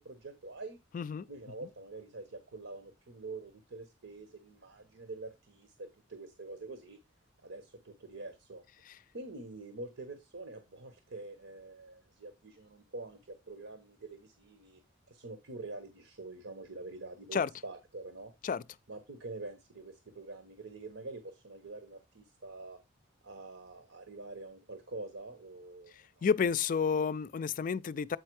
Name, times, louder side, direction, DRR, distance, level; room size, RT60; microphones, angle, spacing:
voice 1, 0.0-0.8 1.3-7.0 7.4-8.6 9.1-14.8 15.1-18.3 18.9-22.8 23.2-26.3, right 2 dB, 85° right, 1.2 m, -46 dB
voice 2, 0.9-1.3 17.3-17.5 18.4-18.6 26.2-28.2, left 6 dB, 45° left, 0.3 m, -30 dB
8.3 x 4.4 x 4.7 m
head